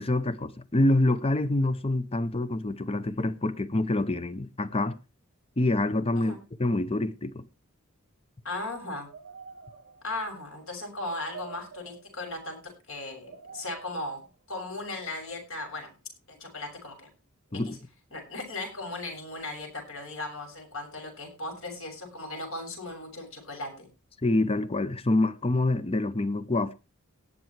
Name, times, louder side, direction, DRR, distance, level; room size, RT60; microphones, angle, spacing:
voice 1, 0.0-5.0 5.6-6.3 6.6-7.5 17.5-17.8 24.2-26.7, left 2 dB, 25° left, 0.7 m, -26 dB
voice 2, 8.4-9.1 10.0-14.2 14.5-15.9 16.3-17.1 17.5-17.8 18.1-23.9, left 2 dB, 70° left, 6.8 m, -37 dB
sound 1, 9.0-10.2 10.8-12.5 13.1-14.3 15.7-15.8, right 4 dB, 60° right, 4.4 m, -48 dB
18.5 x 7.0 x 4.6 m
head